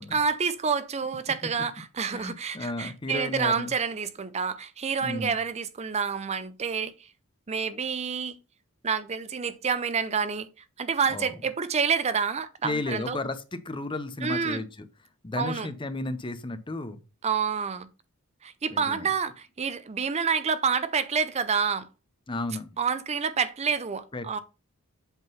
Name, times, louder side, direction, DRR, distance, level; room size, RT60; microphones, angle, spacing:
voice 1, 0.1-7.1 7.5-8.4 8.8-10.5 10.8-13.2 14.2-14.6 15.4-15.7 17.2-17.9 18.4-21.9 22.8-24.4, right 6 dB, 30° right, 0.5 m, -28 dB
voice 2, 2.1-3.7 5.0-5.3 11.1-11.3 12.6-14.7 15.2-17.0 18.7-19.1 22.3-22.7 24.1-24.4, left 2 dB, 25° left, 0.7 m, -33 dB
8.0 x 3.8 x 5.5 m
head